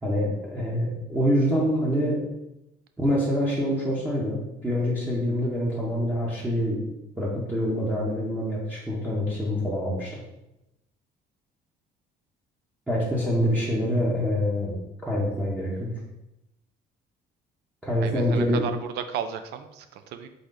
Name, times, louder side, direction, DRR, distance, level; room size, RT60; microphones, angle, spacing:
voice 1, 0.0-2.2 3.0-6.8 7.2-10.1 12.9-14.8 15.0-15.9 17.8-18.6, equal, 10° right, -8 dB, 1.0 m, -25 dB
voice 2, 18.0-20.3, right 9 dB, 75° right, 9 dB, 0.5 m, -34 dB
3.9 x 3.1 x 3.8 m, 0.92 s
cardioid pair, 110°, 17 cm